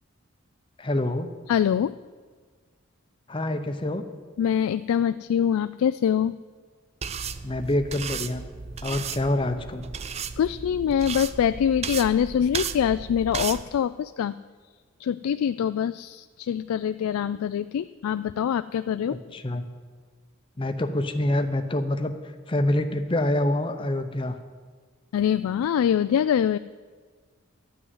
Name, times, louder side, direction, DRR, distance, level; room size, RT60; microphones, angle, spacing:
voice 1, 0.8-1.3 3.3-4.0 7.4-8.4 8.8-9.9 19.1-19.6 20.6-22.1 22.5-24.4, left 1 dB, 25° left, 7 dB, 0.7 m, -26 dB
voice 2, 1.5-2.0 4.4-6.4 10.4-14.4 15.0-19.4 25.1-26.6, left 8 dB, 85° left, 13 dB, 0.3 m, -24 dB
sound 1, 7.0-13.6, right 6 dB, 30° right, 0.4 m, -34 dB
12.0 x 6.3 x 9.4 m, 1.5 s
head